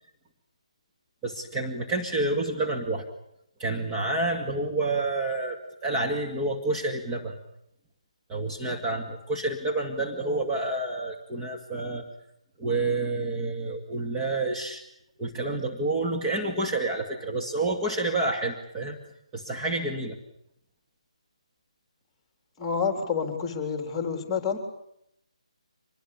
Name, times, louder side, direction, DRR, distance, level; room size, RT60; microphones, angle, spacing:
voice 1, 1.2-3.1 3.6-7.4 8.3-12.1 12.6-14.8 15.2-19.0 19.3-20.2, right 2 dB, 15° right, 0 dB, 2.2 m, -29 dB
voice 2, 22.6-24.6, left 6 dB, 15° left, 6 dB, 3.8 m, -29 dB
25.0 x 21.5 x 8.7 m, 0.76 s
figure-of-eight pair, 155°, 4 cm